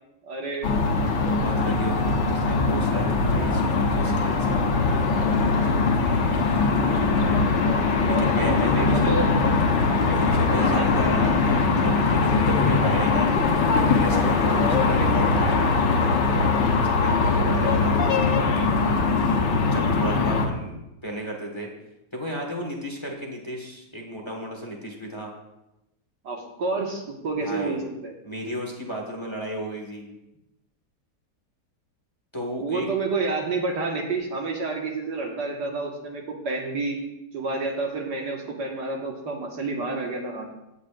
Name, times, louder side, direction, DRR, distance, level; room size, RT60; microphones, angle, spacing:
voice 1, 0.3-0.7 6.7-6.9 7.2-9.3 10.6-10.9 20.2-20.5 26.2-28.1 32.5-37.0 37.3-40.5, right 3 dB, 70° right, 0 dB, 2.2 m, -29 dB
sound 1, 0.6-20.5, left 4 dB, 90° left, 1.7 m, -21 dB
sound 2, 1.1-19.6, equal, 25° right, 3.5 m, -36 dB
voice 2, 1.3-7.4 8.0-9.1 10.0-19.4 19.7-21.7 22.1-25.3 27.4-27.8 28.2-30.1 32.3-32.9, equal, 15° left, -1 dB, 1.7 m, -34 dB
16.0 x 9.2 x 2.5 m, 0.90 s
omnidirectional pair, 1.8 m